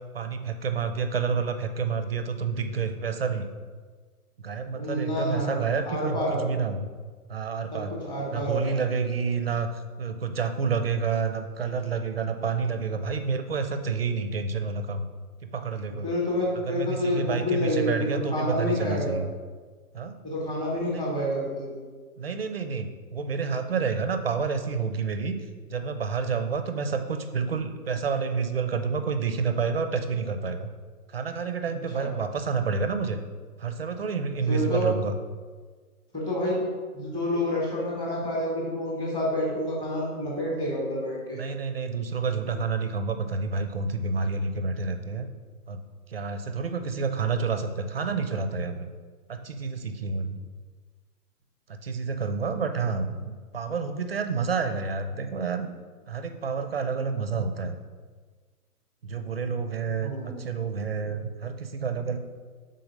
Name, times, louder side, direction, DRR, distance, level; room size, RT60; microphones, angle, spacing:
voice 1, 0.1-3.5 4.4-6.9 7.3-8.0 8.3-15.1 15.4-16.1 16.5-19.3 19.9-20.2 20.9-21.1 22.2-25.4 25.7-30.7 31.1-33.2 33.6-35.2 41.3-45.3 45.7-45.8 46.1-48.9 49.3-50.4 51.7-55.7 56.1-57.7 59.0-62.2, right 5 dB, 40° right, 8 dB, 0.5 m, -29 dB
voice 2, 4.7-6.4 7.7-8.8 16.0-19.2 20.2-21.7 31.9-32.1 34.5-34.9 36.1-36.7 36.9-41.4 60.0-60.4, left 1 dB, 10° left, -4 dB, 0.9 m, -28 dB
5.3 x 3.8 x 5.1 m, 1.5 s
figure-of-eight pair, 125°, 45 cm